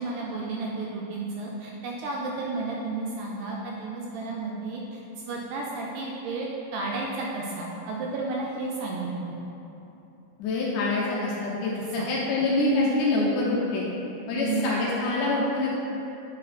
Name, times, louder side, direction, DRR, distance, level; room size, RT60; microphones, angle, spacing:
voice 1, 0.0-9.4 11.8-12.1 14.3-14.7, right 3 dB, 80° right, -2 dB, 2.0 m, -32 dB
voice 2, 10.4-13.9 14.3-15.8, left 2 dB, 75° left, -5 dB, 2.0 m, -25 dB
8.3 x 3.7 x 4.1 m, 3.0 s
omnidirectional pair, 4.2 m